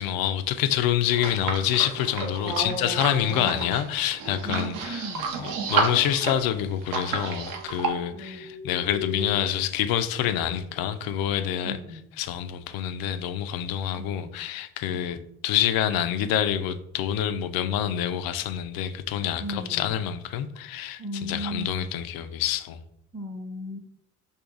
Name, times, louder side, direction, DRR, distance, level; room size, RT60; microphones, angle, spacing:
voice 1, 0.0-5.1 5.4-11.8 12.2-22.8, left 10 dB, 60° left, 0.5 m, -27 dB
sound 1, 1.1-7.9, right 4 dB, 75° right, 0.7 m, -31 dB
voice 2, 2.4-3.7 4.4-5.3 8.1-8.5 11.6-12.0 14.0-14.3 14.9-15.2 19.4-19.9 21.0-21.8 23.1-23.8, equal, 5° right, 0.6 m, -35 dB
sound 2, 4.8-9.4, left 5 dB, 40° right, 0.9 m, -41 dB
2.6 x 2.5 x 3.7 m
hypercardioid pair, 55°, 42 cm